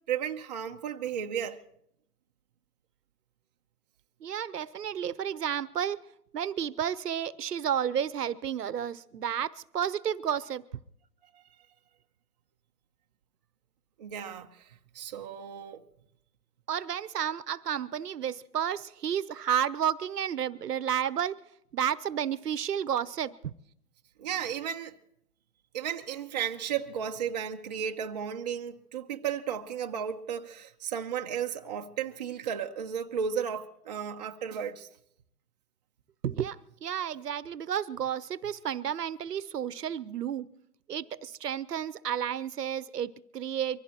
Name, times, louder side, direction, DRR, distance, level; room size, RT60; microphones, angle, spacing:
voice 1, 0.1-1.6 11.3-11.4 14.0-15.8 24.2-24.9 25.7-34.9, right 8 dB, 25° right, 0.7 m, -34 dB
voice 2, 4.2-6.0 6.3-10.6 16.7-21.4 21.7-23.5 36.2-40.5 40.9-43.8, right 9 dB, 75° right, 0.9 m, -31 dB
24.5 x 15.5 x 3.0 m
hypercardioid pair, 150°, 48 cm